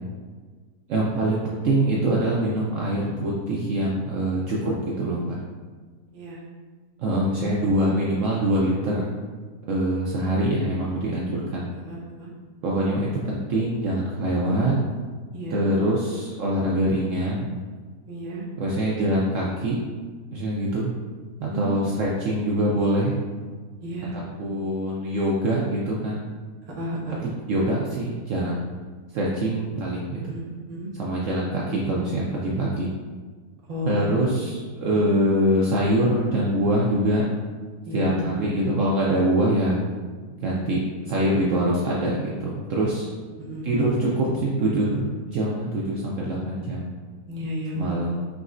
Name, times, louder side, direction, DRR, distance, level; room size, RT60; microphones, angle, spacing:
voice 1, 0.9-5.4 7.0-9.1 9.7-11.7 12.6-14.7 15.5-17.5 18.6-19.8 20.3-20.9 21.4-23.2 24.1-26.3 27.2-28.7 29.1-30.3 31.0-32.9 33.9-37.2 37.9-39.8 40.4-40.8 41.1-43.1 43.6-46.9 47.7-48.1, right 1 dB, 65° right, -4 dB, 0.8 m, -24 dB
voice 2, 11.8-12.3 15.3-15.7 18.1-18.5 21.5-21.7 23.8-24.2 26.8-27.2 30.3-30.9 33.7-34.0 34.4-34.5 34.9-35.1 37.8-38.2 40.5-40.6 43.4-43.7 47.3-48.1, equal, 35° right, -5 dB, 0.6 m, -32 dB
4.8 x 3.1 x 2.5 m, 1.5 s
omnidirectional pair, 1.7 m